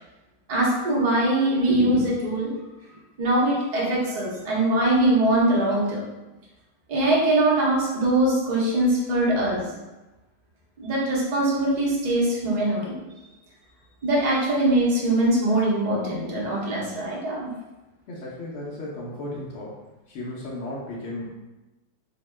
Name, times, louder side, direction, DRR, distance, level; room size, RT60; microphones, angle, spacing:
voice 1, 0.5-2.5 3.2-6.1 6.9-9.7 10.8-13.0 14.0-17.5, right 1 dB, 80° right, -5 dB, 0.3 m, -22 dB
voice 2, 18.1-21.4, left 1 dB, 85° left, -4 dB, 0.6 m, -35 dB
2.7 x 2.1 x 3.2 m, 1.1 s
omnidirectional pair, 1.8 m